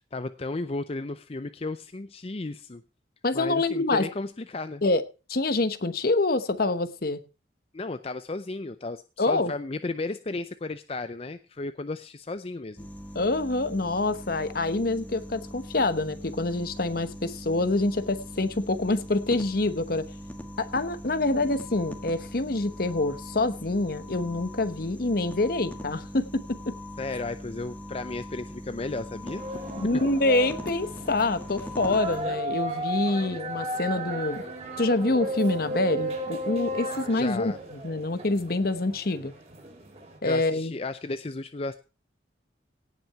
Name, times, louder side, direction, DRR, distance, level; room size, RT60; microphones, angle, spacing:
voice 1, 0.0-2.8 3.3-4.8 7.7-12.9 27.0-30.0 37.1-37.6 40.2-41.8, left 2 dB, 30° left, 11 dB, 0.5 m, -34 dB
voice 2, 3.2-4.1 4.8-5.0 5.3-7.2 9.2-9.5 13.1-20.0 20.6-26.8 29.8-34.4 34.8-39.3 40.2-40.7, left 2 dB, 55° left, 12 dB, 1.0 m, -26 dB
sound 1, 12.8-32.2, equal, 10° left, 1.4 m, -41 dB
sound 2, 29.3-40.2, right 1 dB, 35° right, 4.5 m, -34 dB
17.5 x 6.1 x 5.8 m, 0.33 s
head